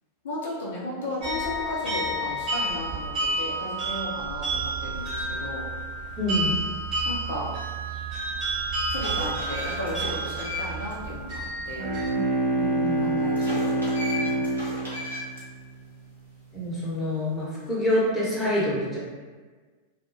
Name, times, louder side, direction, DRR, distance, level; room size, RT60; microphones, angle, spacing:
voice 1, 0.2-5.7 7.0-7.5 8.9-11.4 11.7-11.9 13.0-13.8 14.2-14.5, left 1 dB, 60° left, -5 dB, 0.4 m, -35 dB
sound 1, 1.2-12.1, right 2 dB, 30° right, 0.9 m, -30 dB
voice 2, 6.2-6.6 12.1-12.2 12.5-13.2 16.5-19.0, left 1 dB, 10° left, -9 dB, 0.9 m, -27 dB
sound 2, 7.9-8.0 8.6-10.9 11.3-11.4 13.3-15.4, left 1 dB, 80° right, 0.8 m, -36 dB
Bowed string instrument, 11.6-16.3, right 2 dB, 45° right, 0.4 m, -27 dB
2.2 x 2.0 x 2.7 m, 1.4 s
figure-of-eight pair, 90°, 0 cm